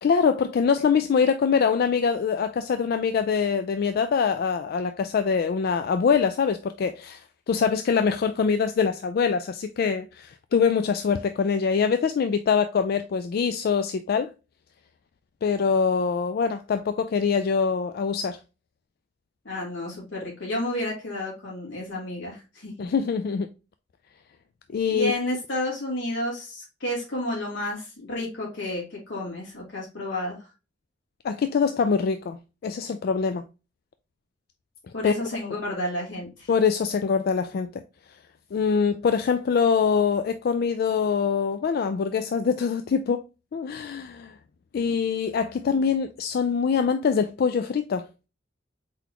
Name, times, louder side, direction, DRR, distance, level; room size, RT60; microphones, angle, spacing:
voice 1, 0.0-7.2 7.5-14.3 15.4-18.4 22.8-23.5 24.7-25.1 31.2-33.4 35.0-35.1 36.5-37.8 38.5-43.2 43.5-44.3 44.7-48.1, left 6 dB, 55° left, 0.3 m, -24 dB
voice 2, 19.4-22.7 24.9-30.4 34.9-36.5, left 1 dB, 85° left, 2.8 m, -31 dB
4.5 x 4.0 x 2.8 m
head